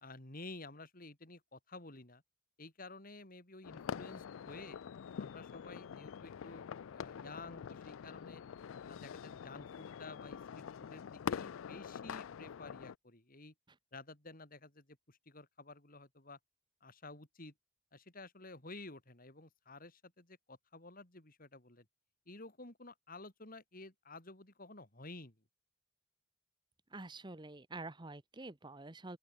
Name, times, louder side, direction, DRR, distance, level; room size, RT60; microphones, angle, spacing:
voice 1, 0.0-2.2 2.6-4.8 5.2-8.4 8.9-13.5 13.9-16.4 16.8-17.5 17.9-21.9 22.3-25.4, left 2 dB, 45° left, 3.5 m, -52 dB
sound 1, 3.6-12.9, left 7 dB, 75° left, 0.4 m, -45 dB
voice 2, 26.9-29.2, right 2 dB, 20° right, 1.0 m, -47 dB
open air
head